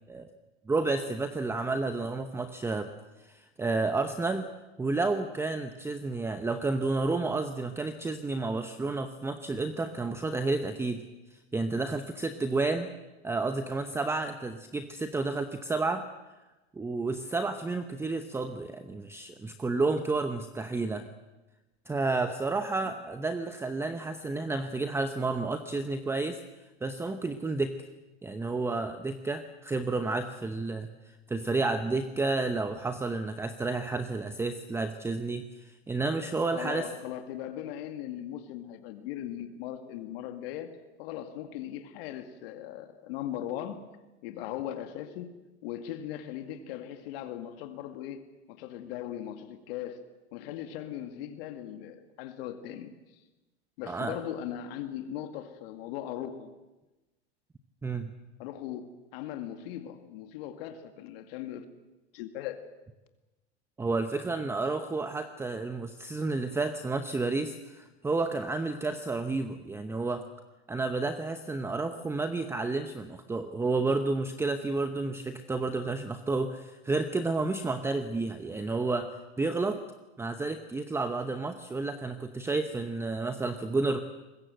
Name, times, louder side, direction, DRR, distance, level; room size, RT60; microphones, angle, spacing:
voice 1, 0.7-2.9 3.2-4.5 4.8-11.0 11.3-12.9 13.2-16.0 16.7-21.1 21.9-26.4 26.8-27.7 28.2-30.9 31.3-36.9 53.9-54.2 57.8-58.1 63.8-70.2 70.7-79.8 80.2-84.0, right 3 dB, 5° right, 9 dB, 0.8 m, -31 dB
voice 2, 36.5-43.9 44.2-50.0 50.3-53.2 53.8-56.5 58.4-61.6 62.1-62.6, left 11 dB, 55° left, 7 dB, 2.1 m, -39 dB
23.5 x 21.0 x 7.8 m, 1.1 s
hypercardioid pair, 130°, 35 cm